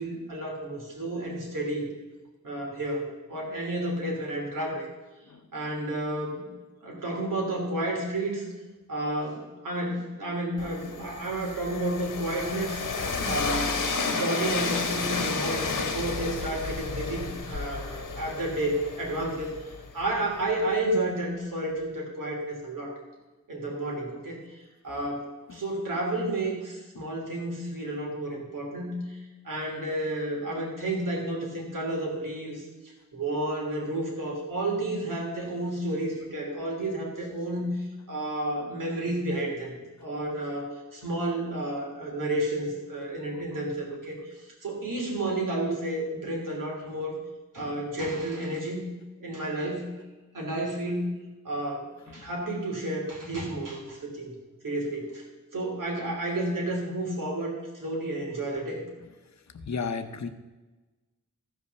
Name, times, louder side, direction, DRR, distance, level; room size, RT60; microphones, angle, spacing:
voice 1, 0.0-1.9 2.4-4.8 5.5-6.5 6.8-8.4 8.9-12.8 13.2-19.5 19.9-22.9 23.5-24.4 24.8-29.2 29.4-32.6 33.1-47.1 47.5-48.9 49.2-49.9 50.3-51.1 51.4-54.3 54.6-55.2 55.5-58.8, right 1 dB, 85° right, -1 dB, 3.1 m, -31 dB
Train, 10.6-20.4, left 4 dB, 85° left, 1.4 m, -32 dB
voice 2, 59.7-60.3, left 5 dB, 60° left, 8 dB, 0.9 m, -32 dB
14.0 x 5.4 x 6.9 m, 1.2 s
wide cardioid pair, 110°, 31 cm